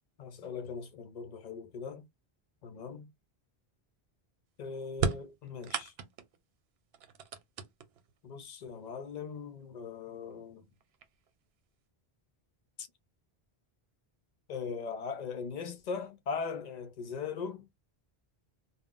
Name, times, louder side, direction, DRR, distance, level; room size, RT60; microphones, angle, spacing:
voice 1, 0.2-2.1 2.6-3.1 4.6-5.9 8.2-10.7 12.8-12.9 14.5-17.7, left 5 dB, 50° left, 0.6 m, -39 dB
sound 1, 4.9-6.4 6.9-8.1 9.1-9.2 10.2-10.3 10.8-11.3, right 6 dB, 75° right, 0.8 m, -35 dB
3.5 x 2.1 x 2.4 m
omnidirectional pair, 1.0 m